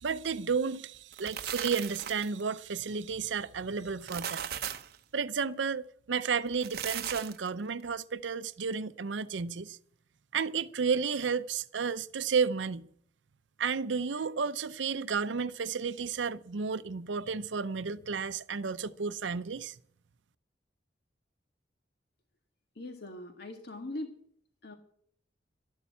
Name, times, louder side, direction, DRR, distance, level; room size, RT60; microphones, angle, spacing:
voice 1, 0.0-4.5 5.1-9.8 10.3-12.9 13.6-19.7, right 5 dB, 80° right, 0.6 m, -32 dB
sound 1, 0.9-2.4 3.9-5.0 6.5-7.5, right 9 dB, 55° right, 0.9 m, -37 dB
voice 2, 22.8-24.2 24.6-24.7, left 1 dB, 60° left, 1.8 m, -41 dB
13.0 x 11.5 x 8.4 m
head